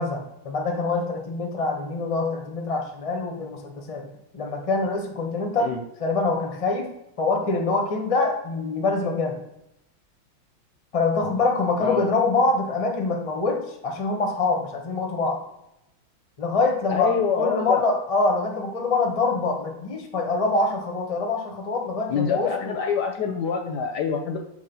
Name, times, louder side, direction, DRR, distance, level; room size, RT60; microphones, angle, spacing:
voice 1, 0.0-4.1 4.3-9.4 10.9-15.4 16.4-22.8, left 3 dB, 30° left, 2 dB, 0.6 m, -25 dB
voice 2, 16.9-17.8 22.1-24.4, left 6 dB, 65° left, 3 dB, 1.1 m, -25 dB
6.4 x 3.1 x 5.5 m, 0.85 s
omnidirectional pair, 2.3 m